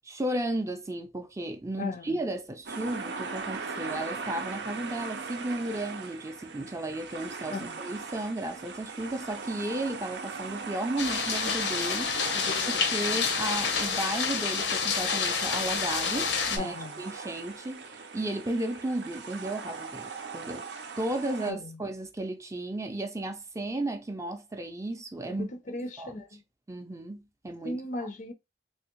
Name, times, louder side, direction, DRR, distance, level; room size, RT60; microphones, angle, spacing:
voice 1, 0.0-12.2 12.6-20.7 21.0-25.5 26.0-26.1 26.7-28.1, right 1 dB, 15° right, 0.4 m, -34 dB
voice 2, 1.8-2.2 7.5-7.7 12.3-12.9 13.1-13.2 16.5-17.0 21.5-21.8 25.4-26.4 27.6-28.3, left 2 dB, 45° left, 0.5 m, -37 dB
sound 1, 2.7-21.5, right 4 dB, 75° right, 0.6 m, -39 dB
sound 2, 11.0-16.6, left 6 dB, 90° left, 0.8 m, -28 dB
3.5 x 2.7 x 2.9 m
head